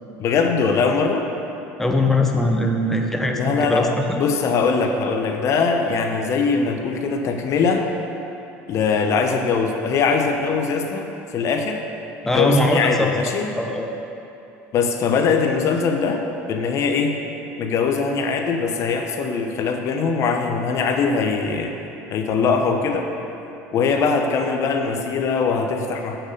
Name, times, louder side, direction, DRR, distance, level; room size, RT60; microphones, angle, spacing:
voice 1, 0.2-1.3 3.3-7.9 8.7-11.8 12.2-13.6 14.7-16.2 16.5-17.2 17.6-21.7 22.1-23.1 23.7-26.2, left 5 dB, 50° left, 4 dB, 0.9 m, -21 dB
voice 2, 1.8-4.0 12.2-13.1 13.6-13.9, left 1 dB, 5° left, 2 dB, 0.9 m, -21 dB
8.2 x 6.0 x 6.7 m, 2.9 s
supercardioid pair, 95°, 6 cm